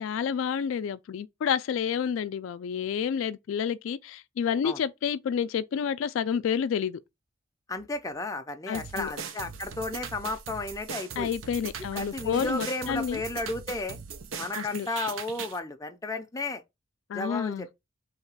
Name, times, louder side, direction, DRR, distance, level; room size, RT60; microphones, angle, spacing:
voice 1, 0.0-7.0 8.7-9.1 11.2-13.2 14.6-14.9 17.1-17.7, left 7 dB, 75° left, 0.3 m, -29 dB
voice 2, 7.7-11.3 11.9-14.0 14.4-16.6 17.1-17.7, left 2 dB, 15° left, 0.5 m, -33 dB
sound 1, 8.5-8.6 8.9-9.0 9.3-9.7 12.3-13.2, right 1 dB, 25° right, 1.1 m, -49 dB
sound 2, 8.7-15.6, right 6 dB, 75° right, 0.6 m, -40 dB
3.2 x 2.9 x 4.6 m
head